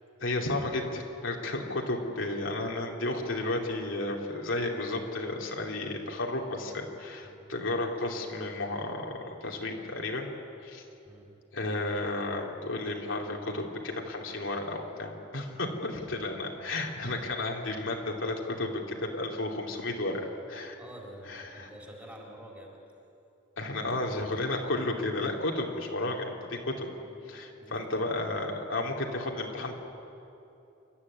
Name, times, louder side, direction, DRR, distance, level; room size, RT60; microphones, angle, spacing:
voice 1, 0.2-10.3 10.6-10.8 11.5-20.7 21.3-21.7 23.6-26.9 27.3-29.7, left 2 dB, 70° left, 0 dB, 2.8 m, -33 dB
voice 2, 20.8-22.8 27.0-27.2 27.6-28.1, right 1 dB, 10° right, -1 dB, 3.8 m, -48 dB
28.5 x 13.0 x 9.7 m, 2.8 s
head